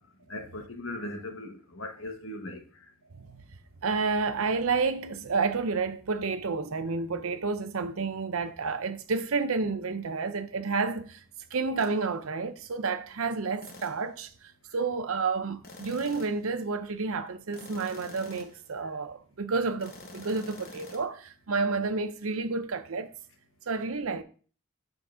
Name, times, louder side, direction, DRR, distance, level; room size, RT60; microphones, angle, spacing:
voice 1, 0.3-2.6, left 1 dB, 70° left, 1.3 m, -38 dB
voice 2, 3.1-3.4 3.8-11.2 11.5-23.1 23.7-24.2, right 4 dB, 85° right, 0.7 m, -30 dB
sound 1, 11.8-12.0 13.6-14.1 15.6-16.5 17.5-18.7 19.8-21.0, left 2 dB, 45° left, 1.1 m, -47 dB
7.1 x 4.0 x 5.0 m
head